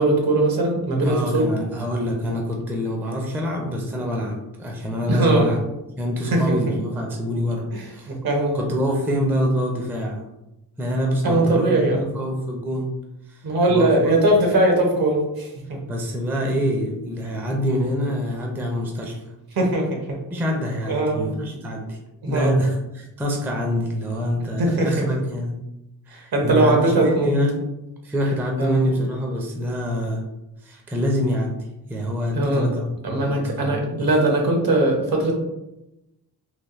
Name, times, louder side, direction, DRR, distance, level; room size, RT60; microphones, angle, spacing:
voice 1, 0.0-1.5 5.1-5.5 6.3-6.6 8.1-8.6 11.2-12.1 13.4-15.8 19.6-20.2 20.9-21.2 22.2-22.6 24.6-25.1 26.1-27.3 28.6-28.8 32.3-32.7 33.0-35.4, right 2 dB, 60° right, 1 dB, 0.8 m, -20 dB
voice 2, 1.0-5.6 6.0-7.7 7.9-8.1 8.5-10.2 10.8-11.8 12.1-12.9 13.3-13.4 13.7-13.9 15.9-19.2 20.3-22.0 22.3-25.5 26.1-27.6 28.0-30.2 30.6-31.6 31.9-34.1, equal, 5° right, 0 dB, 0.4 m, -25 dB
3.2 x 2.3 x 2.4 m, 0.92 s
wide cardioid pair, 105°, 40 cm